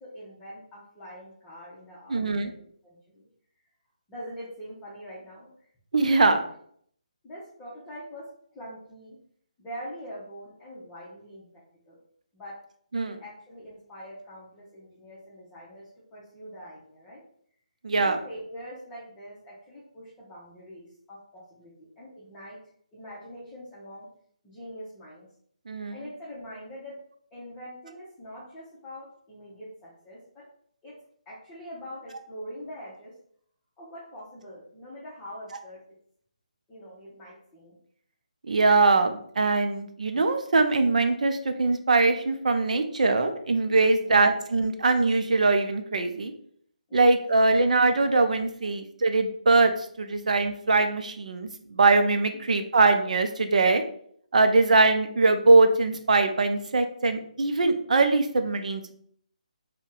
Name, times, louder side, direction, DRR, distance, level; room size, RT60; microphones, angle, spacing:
voice 1, 0.0-2.6 2.8-3.2 4.1-5.7 7.2-8.2 8.5-9.2 9.6-11.6 11.9-12.0 12.3-12.5 13.0-17.2 17.9-22.6 22.9-24.1 24.4-25.3 25.9-27.0 27.3-30.4 30.8-30.9 31.3-33.1 33.8-35.8 36.7-37.8 43.9-44.3 46.9-47.1 48.2-48.3 52.3-52.6, equal, 15° left, -9 dB, 0.8 m, -43 dB
voice 2, 2.1-2.5 5.9-6.4 12.9-13.2 17.8-18.2 25.7-26.0 38.5-46.3 46.9-53.8 54.3-58.9, right 3 dB, 65° right, 7 dB, 0.5 m, -22 dB
2.6 x 2.2 x 3.7 m, 0.63 s
figure-of-eight pair, 150°, 4 cm